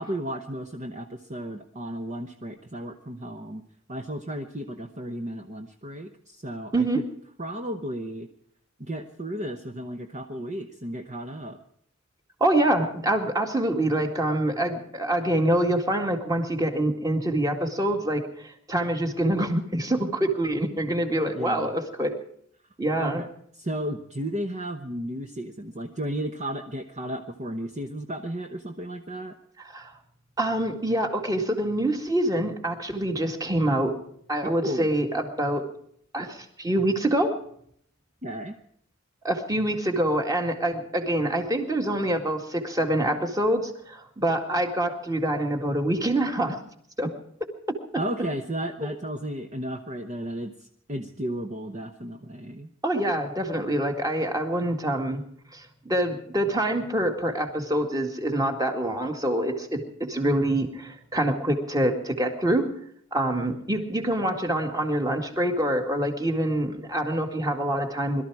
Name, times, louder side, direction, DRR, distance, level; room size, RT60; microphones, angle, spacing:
voice 1, 0.0-3.6 3.9-7.0 7.4-8.3 8.8-11.6 21.3-21.7 23.0-23.3 23.5-29.4 34.4-34.9 38.2-38.5 48.0-52.7, right 1 dB, 35° right, 5 dB, 1.1 m, -34 dB
voice 2, 6.7-7.0 12.4-22.2 22.8-23.2 29.7-29.9 30.4-34.0 34.3-35.7 36.1-37.3 39.2-46.6 47.0-47.1 47.7-48.0 48.8-48.9 52.8-55.2 55.5-62.7 63.1-68.2, right 1 dB, 15° right, 4 dB, 2.1 m, -25 dB
22.0 x 13.0 x 4.8 m, 0.68 s
head